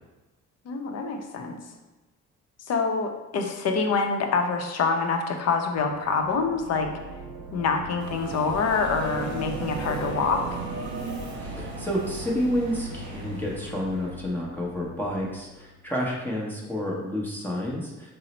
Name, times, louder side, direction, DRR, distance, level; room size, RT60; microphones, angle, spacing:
voice 1, 0.7-1.6 2.7-6.9 7.5-10.6, left 4 dB, 55° left, 4 dB, 0.6 m, -26 dB
sound 1, 5.8-16.0, right 3 dB, 65° right, 0.6 m, -39 dB
Subway metro underground, 8.0-14.2, right 2 dB, 40° right, 0.9 m, -38 dB
voice 2, 11.3-18.1, equal, 5° left, -4 dB, 0.7 m, -30 dB
3.8 x 2.0 x 4.1 m, 1.1 s
cardioid pair, 90°, 30 cm